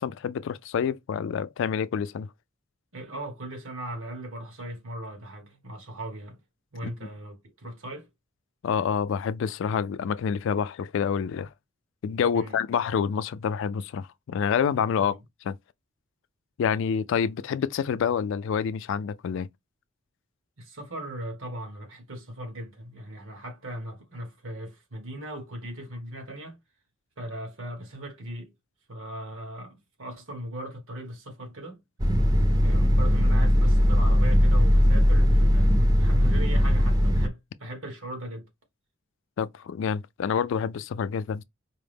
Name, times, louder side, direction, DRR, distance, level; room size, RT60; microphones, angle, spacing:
voice 1, 0.0-2.3 6.8-6.9 8.6-11.5 12.0-15.2 15.4-15.6 16.6-19.5 39.4-41.4, left 7 dB, 65° left, 0.3 m, -27 dB
voice 2, 2.9-6.4 6.7-8.1 12.3-12.6 15.0-15.2 20.6-26.6 27.2-28.5 28.9-31.8 32.6-38.5, right 1 dB, 75° right, 1.3 m, -38 dB
sound 1, 32.0-37.3, equal, 20° right, 0.5 m, -20 dB
4.7 x 2.0 x 3.3 m
head